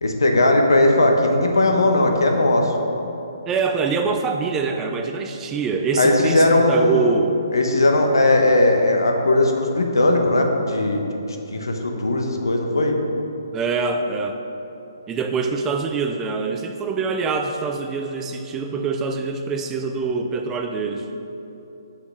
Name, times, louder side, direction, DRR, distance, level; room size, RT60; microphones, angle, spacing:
voice 1, 0.0-2.7 6.0-7.1 7.5-11.0 11.3-13.0, left 2 dB, 75° left, 3 dB, 1.0 m, -18 dB
voice 2, 3.5-7.4 13.5-14.4 15.1-21.1, right 4 dB, 15° right, 5 dB, 0.4 m, -24 dB
5.9 x 5.8 x 5.9 m, 3.0 s
figure-of-eight pair, 135°, 2 cm